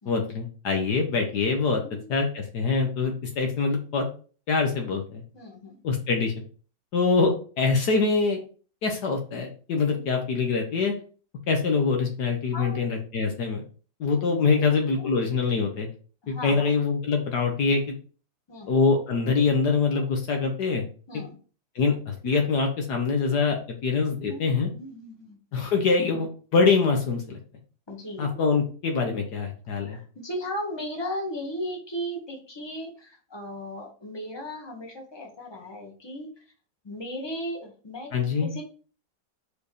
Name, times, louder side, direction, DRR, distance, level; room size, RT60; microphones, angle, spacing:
voice 1, 0.0-1.8 2.1-4.1 4.5-5.2 5.8-6.3 6.9-8.4 8.8-10.9 11.5-13.6 14.0-15.9 16.3-17.8 18.7-20.8 21.1-21.2 21.7-24.7 25.5-27.4 28.2-30.0 38.1-38.5, left 4 dB, 65° left, 3 dB, 1.6 m, -24 dB
voice 2, 5.3-5.8 9.9-10.1 12.5-12.9 14.4-15.2 16.2-16.7 18.5-18.8 21.1-21.4 24.1-25.4 27.9-28.3 29.9-36.3 36.8-38.1 38.4-38.6, equal, 15° left, 0 dB, 1.6 m, -36 dB
5.0 x 4.7 x 4.9 m, 0.39 s
omnidirectional pair, 1.9 m